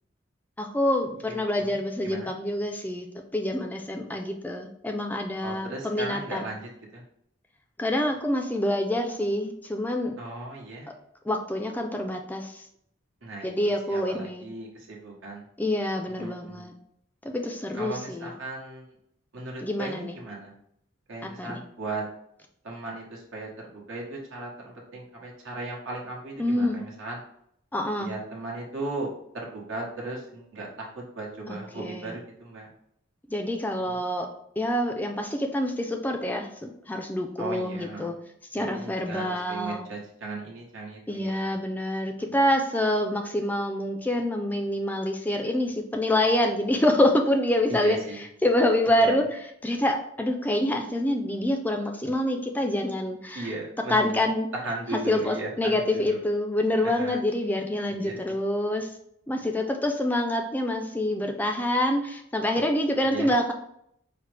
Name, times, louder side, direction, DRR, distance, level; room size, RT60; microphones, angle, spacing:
voice 1, 0.6-3.1 3.3-6.5 7.8-10.1 11.3-12.7 13.4-14.5 15.6-16.7 17.2-18.3 19.6-20.2 21.4-21.6 26.4-26.8 27.7-28.1 31.5-32.2 33.3-34.3 34.6-38.2 38.5-39.8 41.1-48.0 48.4-53.5 53.9-54.5 54.9-58.9 59.3-63.5, left 1 dB, 10° left, 3 dB, 0.3 m, -26 dB
voice 2, 1.3-2.3 5.4-7.0 10.2-10.9 13.2-15.4 16.1-16.7 17.7-18.9 19.3-20.5 21.1-22.0 22.6-27.2 28.0-29.1 29.3-32.7 33.8-34.0 37.4-38.1 38.5-41.5 42.3-42.4 47.7-48.2 49.0-49.2 53.3-56.2 56.8-57.2 57.9-58.2 63.1-63.3, right 2 dB, 90° right, -2 dB, 1.1 m, -37 dB
4.9 x 2.0 x 3.2 m, 0.71 s
head